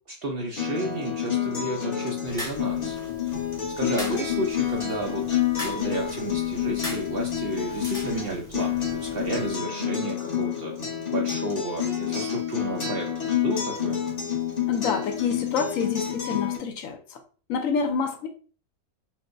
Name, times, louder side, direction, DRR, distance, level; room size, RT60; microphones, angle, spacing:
voice 1, 0.1-3.0 3.8-10.7 11.1-14.0, right 2 dB, 70° right, 1 dB, 0.5 m, -32 dB
Acoustic guitar, 0.6-16.6, left 9 dB, 35° left, 0.8 m, -28 dB
sound 1, 2.2-9.6, equal, 5° left, 0.6 m, -41 dB
voice 2, 14.7-17.2 17.5-18.3, left 5 dB, 70° left, 5 dB, 1.0 m, -28 dB
4.4 x 2.0 x 2.5 m, 0.39 s
omnidirectional pair, 1.5 m